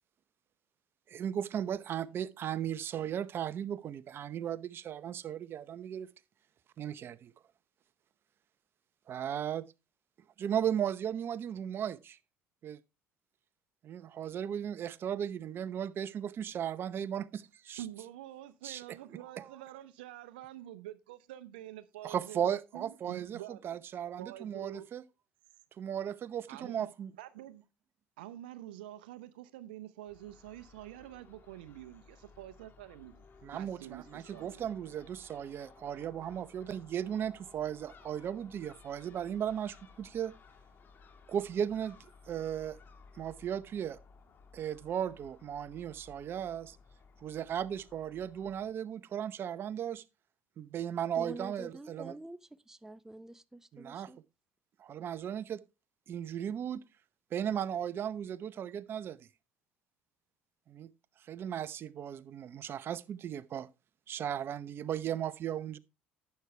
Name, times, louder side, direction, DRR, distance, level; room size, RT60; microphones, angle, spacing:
voice 1, 1.1-6.1 6.8-7.3 9.1-9.6 10.4-12.2 12.6-12.8 13.8-17.8 18.6-19.0 19.4-19.5 22.0-25.0 25.8-27.1 33.4-40.3 41.3-42.0 42.3-42.8 43.2-44.0 44.5-46.8 47.2-50.0 50.6-52.1 53.7-54.1 54.8-55.6 56.1-56.8 57.3-59.2 60.7-60.9 61.3-63.7 64.1-65.8, right 9 dB, 50° right, 0.8 m, -36 dB
voice 2, 17.8-23.6 24.2-24.9 26.5-26.9 27.2-27.6 28.2-33.2 33.5-35.0, right 13 dB, 85° right, 0.8 m, -47 dB
Crow / Gull seagull, 30.1-48.7, left 4 dB, 45° left, 1.9 m, -58 dB
voice 3, 51.2-52.4 52.7-54.2, right 1 dB, 10° right, 0.7 m, -47 dB
11.5 x 8.3 x 3.3 m
hypercardioid pair, 75°, 5 cm